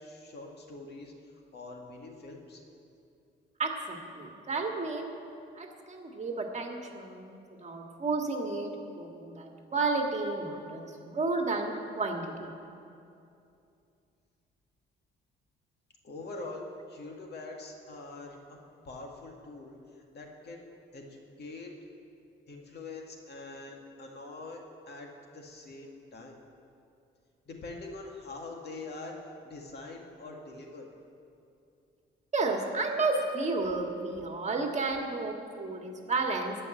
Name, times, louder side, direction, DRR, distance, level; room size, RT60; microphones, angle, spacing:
voice 1, 0.0-2.6 16.0-18.4 18.8-20.7 20.9-21.7 22.5-26.4 27.5-30.9, left 2 dB, 55° left, 1 dB, 2.0 m, -44 dB
voice 2, 3.6-5.1 5.6-12.5 32.3-36.6, right 3 dB, 35° right, 2 dB, 1.7 m, -32 dB
16.0 x 5.4 x 9.9 m, 2.6 s
cardioid pair, 90°, 20 cm